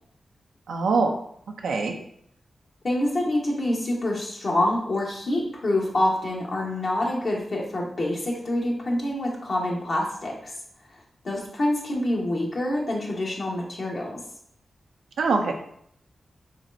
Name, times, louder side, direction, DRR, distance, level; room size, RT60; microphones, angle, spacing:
voice 1, 0.7-1.1 1.6-1.9 15.2-15.5, right 4 dB, 85° right, 2 dB, 0.5 m, -23 dB
voice 2, 2.8-10.3 11.2-14.2, left 1 dB, 65° left, -3 dB, 1.2 m, -26 dB
4.3 x 3.2 x 2.6 m, 0.69 s
cardioid pair, 45°, 0 cm